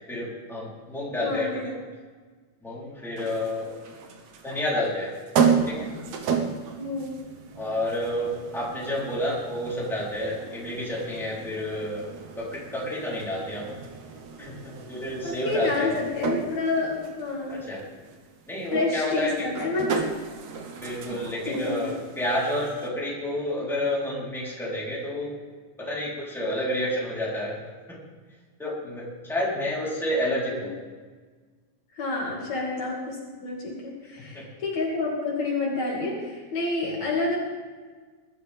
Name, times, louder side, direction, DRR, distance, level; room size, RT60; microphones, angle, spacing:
voice 1, 0.0-1.7 2.6-3.7 4.4-5.1 5.6-5.9 7.5-12.1 12.4-13.8 14.4-15.9 17.5-17.8 18.5-19.5 20.8-25.3 25.8-27.6 27.9-28.0 28.6-30.7 34.3-34.4, left 1 dB, ahead, -7 dB, 3.8 m, -30 dB
voice 2, 1.2-1.7 6.8-7.2 15.2-17.6 18.7-20.1 21.5-21.9 29.5-29.6 32.0-37.4, left 3 dB, 60° left, -3 dB, 3.6 m, -29 dB
sound 1, 3.2-22.9, right 6 dB, 65° right, 2.4 m, -33 dB
21.0 x 12.0 x 3.6 m, 1.4 s
omnidirectional pair, 3.6 m